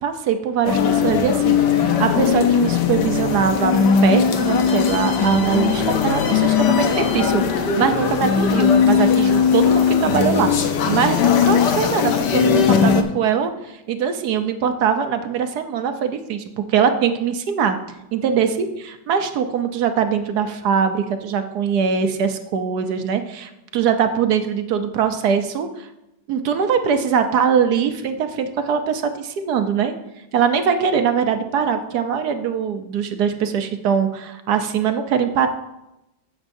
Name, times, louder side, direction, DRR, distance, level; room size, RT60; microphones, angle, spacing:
voice 1, 0.0-3.7 4.0-13.5 13.9-17.8 18.1-25.9 26.3-29.9 30.3-35.5, right 7 dB, 65° right, 8 dB, 1.1 m, -22 dB
sound 1, 0.6-13.0, left 7 dB, 65° left, 1.3 m, -18 dB
15.5 x 7.2 x 2.6 m, 0.91 s
omnidirectional pair, 2.2 m